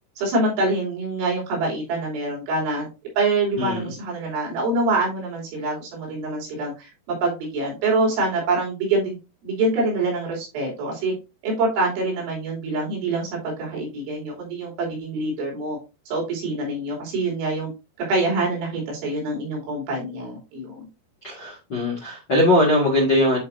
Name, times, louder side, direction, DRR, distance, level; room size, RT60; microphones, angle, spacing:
voice 1, 0.2-2.9 3.2-9.2 9.4-11.1 11.4-15.8 16.1-17.7 18.0-20.9, right 2 dB, 85° right, 5.4 m, -25 dB
voice 2, 3.6-3.9 21.2-23.4, left 1 dB, 55° left, 1.2 m, -20 dB
10.5 x 4.5 x 2.6 m
omnidirectional pair, 5.3 m